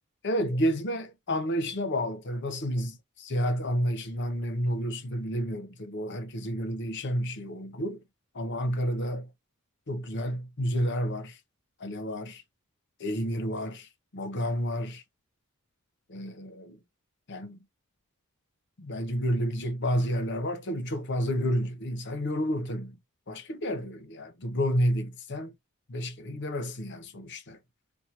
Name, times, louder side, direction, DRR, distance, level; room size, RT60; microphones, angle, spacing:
voice 1, 0.2-8.0 8.3-9.3 9.9-11.4 11.8-12.4 13.0-15.0 16.1-16.8 17.3-17.6 18.8-23.0 23.3-25.5 25.9-27.6, equal, 55° left, 0.9 m, -30 dB
4.6 x 2.2 x 2.9 m
head